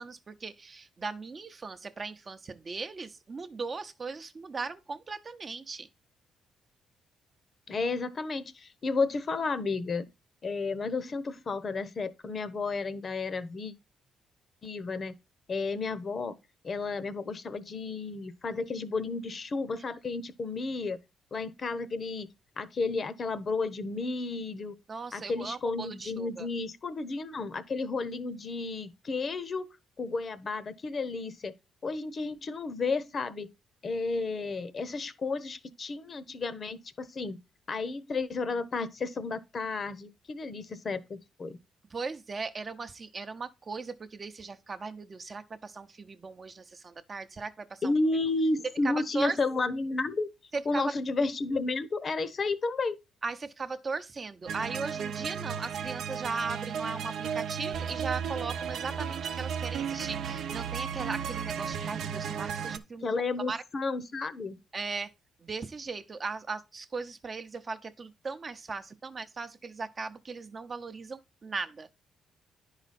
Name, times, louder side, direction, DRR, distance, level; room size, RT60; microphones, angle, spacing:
voice 1, 0.0-5.9 24.9-26.5 41.9-47.9 48.8-49.4 50.5-50.9 53.2-63.1 63.5-63.6 64.7-65.1 65.4-71.9, right 4 dB, 35° right, 0.7 m, -38 dB
voice 2, 7.7-10.1 10.4-13.7 14.6-15.1 15.5-16.3 16.6-21.0 21.3-22.3 22.6-24.7 25.1-29.7 30.0-31.5 31.8-33.5 33.8-37.4 37.7-41.6 47.8-50.3 50.7-53.0 63.0-64.6, left 3 dB, 40° left, 0.8 m, -32 dB
sound 1, 54.5-62.8, right 7 dB, 70° right, 0.7 m, -34 dB
9.9 x 4.9 x 4.1 m
cardioid pair, 90°, 0 cm